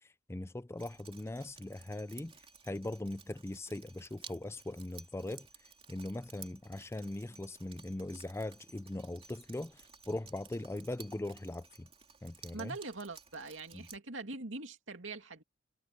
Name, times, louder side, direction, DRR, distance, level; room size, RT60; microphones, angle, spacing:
voice 1, 0.3-2.3 2.6-5.5 5.9-9.8 10.1-11.9 12.2-12.8 13.7-13.9, left 1 dB, 15° left, 0.5 m, -40 dB
Drip, 0.8-14.0, right 6 dB, 30° right, 3.4 m, -56 dB
voice 2, 12.5-15.4, right 3 dB, 80° right, 2.6 m, -43 dB
head